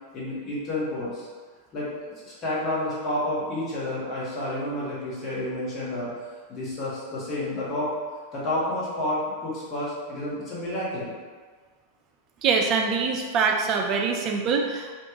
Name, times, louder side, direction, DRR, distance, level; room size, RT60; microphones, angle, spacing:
voice 1, 0.1-1.3 1.7-6.1 6.5-7.9 8.3-11.1, left 1 dB, 30° left, -7 dB, 1.1 m, -30 dB
voice 2, 12.4-15.0, right 5 dB, 35° right, 1 dB, 0.4 m, -24 dB
2.9 x 2.1 x 2.8 m, 1.5 s
figure-of-eight pair, 90°, 0 cm